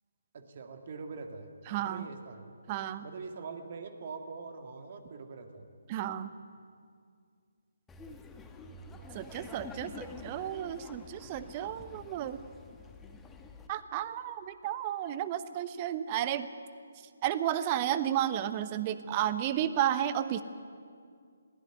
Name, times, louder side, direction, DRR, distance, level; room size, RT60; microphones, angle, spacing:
voice 1, 0.3-1.5 1.9-2.5 3.0-5.7 8.9-9.4, right 4 dB, 45° right, 6 dB, 2.2 m, -44 dB
voice 2, 1.7-2.1 2.7-3.0 5.9-6.3 9.1-12.4 13.7-16.5 17.2-20.4, right 11 dB, 30° right, 13 dB, 1.0 m, -32 dB
Laughter, 7.9-13.7, left 3 dB, 10° left, 1.3 m, -48 dB
21.0 x 16.5 x 9.4 m, 2.2 s
figure-of-eight pair, 140°, 0 cm